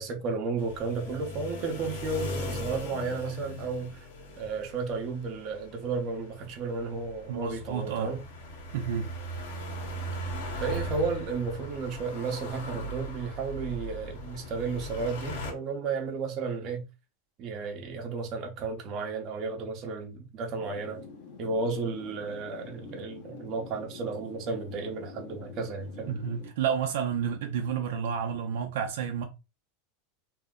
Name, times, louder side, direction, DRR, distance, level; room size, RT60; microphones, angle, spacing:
voice 1, 0.0-4.1 4.4-8.2 10.6-16.8 17.4-21.0 21.4-26.2, right 4 dB, 35° right, 0.8 m, -33 dB
sound 1, 0.6-15.5, equal, 75° left, 1.3 m, -39 dB
voice 2, 7.3-8.1 8.7-9.1 26.1-29.2, right 7 dB, 75° right, 0.5 m, -30 dB
sound 2, 20.6-26.5, left 5 dB, 55° left, 0.8 m, -46 dB
2.7 x 2.1 x 3.6 m
supercardioid pair, 150°, 0 cm